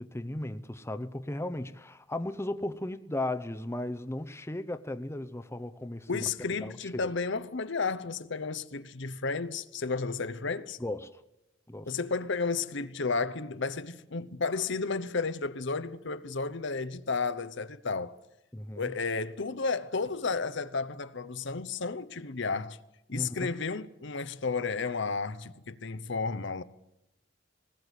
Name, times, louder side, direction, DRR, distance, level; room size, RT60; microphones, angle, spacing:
voice 1, 0.0-6.2 6.6-7.0 10.8-11.2 11.7-11.9 18.5-18.9 23.1-23.5, left 1 dB, 15° left, 0.8 m, -36 dB
voice 2, 6.1-10.8 11.9-18.2 18.8-22.8 23.1-26.6, left 4 dB, 65° left, 0.9 m, -32 dB
20.5 x 19.0 x 8.3 m
head